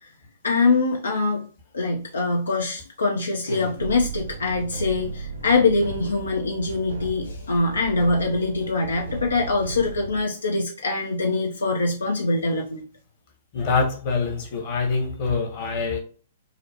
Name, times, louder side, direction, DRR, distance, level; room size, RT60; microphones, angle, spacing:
voice 1, 0.4-1.5 1.7-12.8, left 3 dB, 80° left, 1 dB, 0.5 m, -23 dB
sound 1, 3.8-10.2, right 3 dB, 70° right, 0.6 m, -35 dB
voice 2, 13.5-16.0, left 4 dB, 45° left, 3 dB, 1.0 m, -25 dB
3.7 x 2.1 x 2.8 m, 0.40 s
figure-of-eight pair, 115°, 0 cm